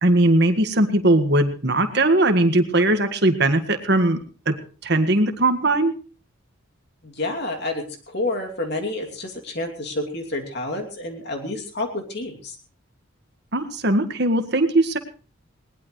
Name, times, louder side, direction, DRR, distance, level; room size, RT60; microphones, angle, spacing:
voice 1, 0.0-4.2 4.5-4.6 4.8-5.9 13.5-15.0, right 1 dB, 55° right, 7 dB, 1.7 m, -19 dB
voice 2, 7.0-12.6, left 2 dB, 55° left, 2 dB, 2.8 m, -29 dB
20.5 x 19.0 x 3.2 m, 0.38 s
head